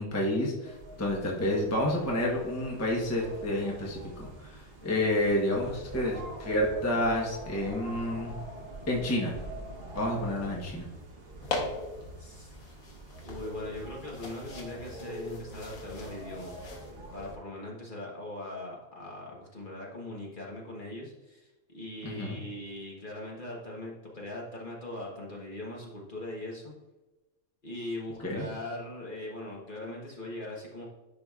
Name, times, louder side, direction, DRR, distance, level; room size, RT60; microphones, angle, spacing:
voice 1, 0.0-8.3 8.9-9.3 9.9-10.9 22.0-22.4 28.2-28.4, left 1 dB, 10° left, -2 dB, 0.9 m, -29 dB
sound 1, 0.6-17.4, right 1 dB, 45° right, 1.3 m, -44 dB
sound 2, 11.4-16.9, left 3 dB, 80° left, 1.6 m, -41 dB
voice 2, 12.2-12.5 13.2-16.6 17.1-26.7 27.6-30.9, left 1 dB, 35° left, -3 dB, 1.3 m, -40 dB
10.5 x 4.9 x 2.4 m, 1.1 s
omnidirectional pair, 1.5 m